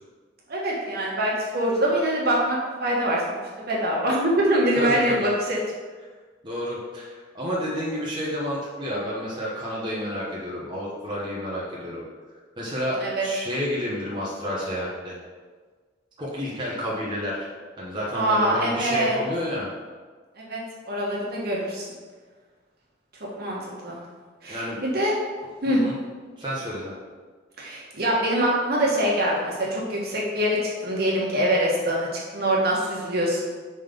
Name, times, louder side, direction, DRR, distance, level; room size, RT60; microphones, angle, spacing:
voice 1, 0.5-5.6 13.0-13.2 18.1-19.2 20.4-20.6 20.8-21.9 23.4-23.6 23.8-24.0 24.4-25.1 25.6-25.8 27.6-33.4, right 1 dB, 55° right, -4 dB, 1.5 m, -24 dB
voice 2, 4.8-5.3 6.4-12.0 12.6-15.2 16.2-17.5 17.8-19.7 24.5-24.8 25.7-25.9 26.4-27.0, equal, 25° right, -6 dB, 1.1 m, -30 dB
5.4 x 3.9 x 5.2 m, 1.5 s
head